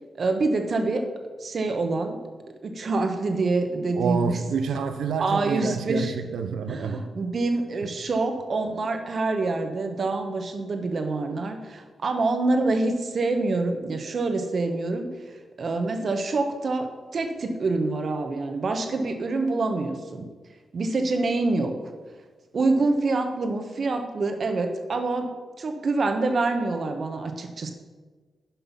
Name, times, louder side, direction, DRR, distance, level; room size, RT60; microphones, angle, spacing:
voice 1, 0.1-1.1 1.4-2.2 2.6-4.4 5.2-6.2 6.7-20.3 20.7-21.8 22.5-25.3 25.6-27.7, right 3 dB, 60° right, 6 dB, 1.2 m, -26 dB
voice 2, 3.9-7.0 7.8-7.9, right 6 dB, 80° right, 9 dB, 0.6 m, -28 dB
10.0 x 5.5 x 5.7 m, 1.4 s
supercardioid pair, 50°, 0 cm